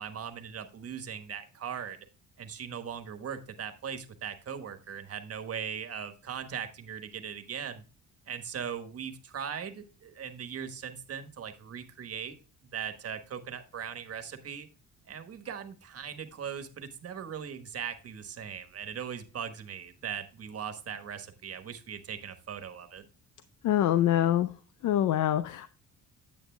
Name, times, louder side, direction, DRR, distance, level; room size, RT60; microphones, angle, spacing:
voice 1, 0.0-2.0 2.4-7.8 8.3-12.4 12.7-14.7 15.1-23.1, right 7 dB, 50° right, 1.3 m, -39 dB
voice 2, 23.6-24.5 24.8-25.7, left 12 dB, 80° left, 0.6 m, -25 dB
9.4 x 8.3 x 2.2 m
cardioid pair, 90°, 30 cm